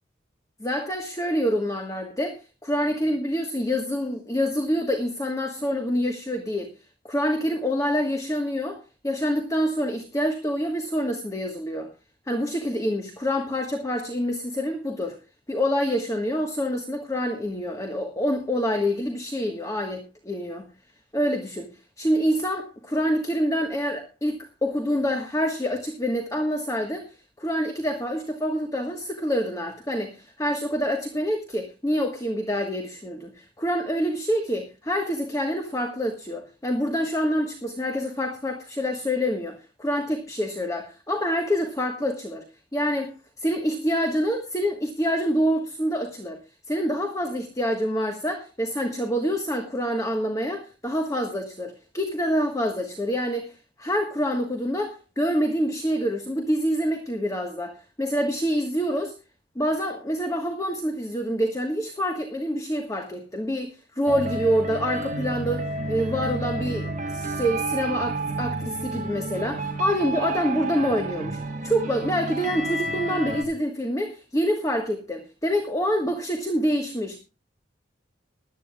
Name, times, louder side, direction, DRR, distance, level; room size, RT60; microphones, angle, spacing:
voice 1, 0.6-6.8 7.0-11.9 12.3-15.2 15.5-20.7 21.1-21.7 22.0-42.5 42.7-46.4 46.7-59.2 59.5-77.2, equal, 20° left, 5 dB, 1.4 m, -26 dB
sound 1, 64.1-73.4, right 2 dB, 40° right, 1.8 m, -30 dB
20.0 x 12.5 x 2.4 m, 0.28 s
head